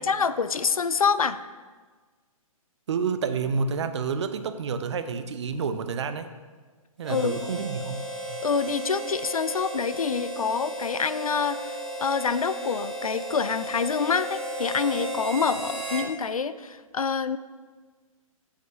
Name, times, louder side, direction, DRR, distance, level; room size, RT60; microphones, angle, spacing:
voice 1, 0.0-1.4 7.1-7.4 8.4-17.4, left 5 dB, 75° left, 14 dB, 0.4 m, -26 dB
voice 2, 2.9-6.3 7.0-8.4, right 5 dB, 50° right, 10 dB, 0.6 m, -29 dB
Harmonica, 7.0-16.1, right 1 dB, ahead, 0.7 m, -34 dB
15.0 x 5.1 x 2.7 m, 1.4 s
figure-of-eight pair, 125°, 18 cm